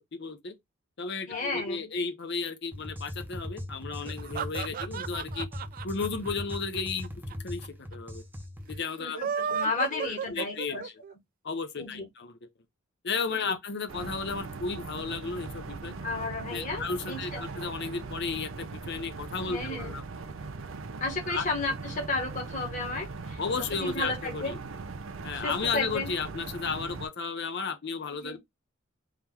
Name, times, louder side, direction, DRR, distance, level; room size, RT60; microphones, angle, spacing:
voice 1, 0.2-0.5 1.0-5.5 5.8-7.1 7.4-8.2 8.7-9.2 9.9-10.8 11.4-12.5 13.0-15.9 16.5-20.0 21.3-21.5 23.4-24.6 25.2-28.4, left 5 dB, 60° left, 0.8 m, -34 dB
voice 2, 1.2-1.9 4.9-5.0 9.0-10.9 11.8-12.1 13.3-13.5 16.0-17.4 19.4-20.0 21.0-23.4 23.7-24.6 25.3-26.1 28.1-28.4, left 3 dB, 40° left, 1.5 m, -33 dB
sound 1, 2.7-8.8, left 1 dB, 10° right, 0.8 m, -39 dB
sound 2, 4.0-7.3 7.6-7.7 7.9-8.0 9.0-11.1, right 7 dB, 45° right, 0.3 m, -34 dB
sound 3, 13.9-27.1, right 3 dB, 80° right, 0.6 m, -40 dB
3.8 x 3.0 x 3.4 m
head